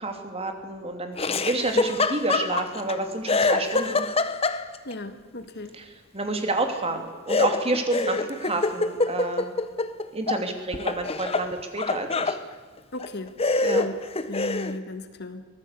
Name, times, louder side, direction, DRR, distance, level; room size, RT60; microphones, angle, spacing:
voice 1, 0.0-4.0 5.7-9.5 10.1-12.4 13.6-13.8, right 2 dB, 30° right, 5 dB, 2.9 m, -29 dB
Laughter, 1.2-2.9 3.3-4.9 7.3-10.4 10.7-12.4 13.0-13.1 13.4-14.8, left 3 dB, 30° left, 1.1 m, -25 dB
voice 2, 4.8-5.7 12.9-13.3 13.6-13.9 14.3-15.5, left 2 dB, 55° left, 9 dB, 1.7 m, -35 dB
24.0 x 18.0 x 8.4 m, 1.4 s
head